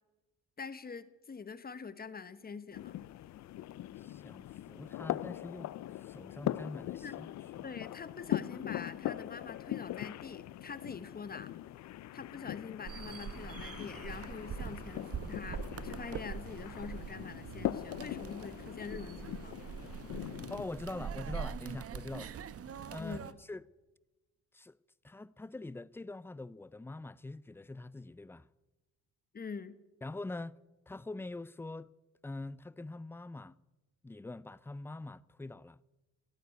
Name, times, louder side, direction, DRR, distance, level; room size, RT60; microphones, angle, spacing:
voice 1, 0.6-2.9 6.9-7.1 7.6-11.5 12.1-19.6 23.0-23.4 29.3-29.8, left 5 dB, 30° left, 1.2 m, -45 dB
sound 1, 2.7-20.7, left 14 dB, 65° left, 0.5 m, -41 dB
voice 2, 4.0-7.6 20.5-22.3 22.9-23.6 24.5-24.8 25.0-28.5 30.0-30.6 30.9-31.9 32.2-33.6 34.0-35.8, left 2 dB, 10° left, 0.4 m, -44 dB
sound 2, 12.8-23.3, right 7 dB, 50° right, 1.0 m, -43 dB
16.0 x 9.4 x 9.3 m
cardioid pair, 90°, 30 cm